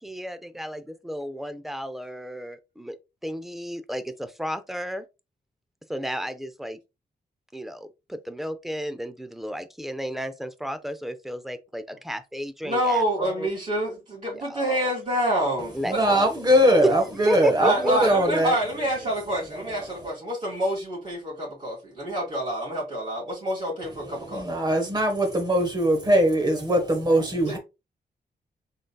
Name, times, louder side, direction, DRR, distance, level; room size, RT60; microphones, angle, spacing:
voice 1, 0.0-2.9 3.2-5.0 5.9-6.8 7.5-13.5 14.3-14.9 15.7-16.3 17.3-17.9, equal, ahead, 0.4 m, -33 dB
voice 2, 12.6-16.0 17.6-24.5 27.5-27.6, right 1 dB, 40° right, 2.4 m, -27 dB
voice 3, 15.8-18.5 19.8-19.9 24.0-27.6, equal, 25° right, 1.2 m, -21 dB
3.9 x 3.7 x 2.2 m
wide cardioid pair, 155°, 17 cm